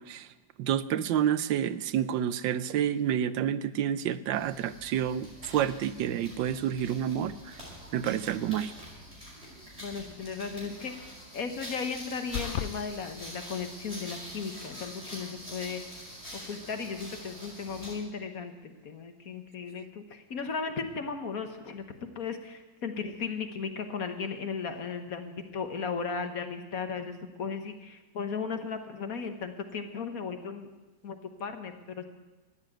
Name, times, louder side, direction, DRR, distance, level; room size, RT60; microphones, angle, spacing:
voice 1, 0.6-7.6 7.9-8.7, right 10 dB, 80° right, 15 dB, 1.3 m, -29 dB
sound 1, 4.3-18.0, equal, 15° right, 7.3 m, -45 dB
voice 2, 9.8-11.1 11.3-15.8 16.3-30.7 31.0-32.0, left 5 dB, 55° left, 7 dB, 1.4 m, -36 dB
sound 2, 12.3-12.7, left 9 dB, 85° left, 0.6 m, -32 dB
13.5 x 9.8 x 9.1 m, 1.2 s
omnidirectional pair, 2.0 m